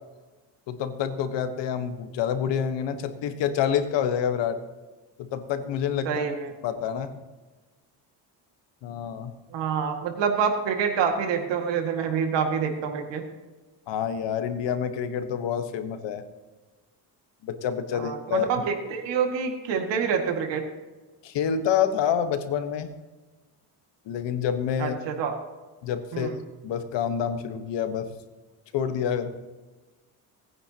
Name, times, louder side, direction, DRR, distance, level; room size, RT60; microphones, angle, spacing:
voice 1, 0.7-4.6 5.2-6.2 6.6-7.2 8.8-9.3 13.9-16.2 17.4-18.5 21.2-22.9 24.1-25.0 25.8-28.1 28.7-29.3, left 8 dB, 80° left, 9 dB, 1.4 m, -27 dB
voice 2, 6.1-6.5 9.5-13.2 17.9-20.6 24.8-25.3 26.1-26.4, right 6 dB, 85° right, 4 dB, 2.1 m, -27 dB
19.0 x 9.6 x 2.9 m, 1.2 s
cardioid pair, 90°, 43 cm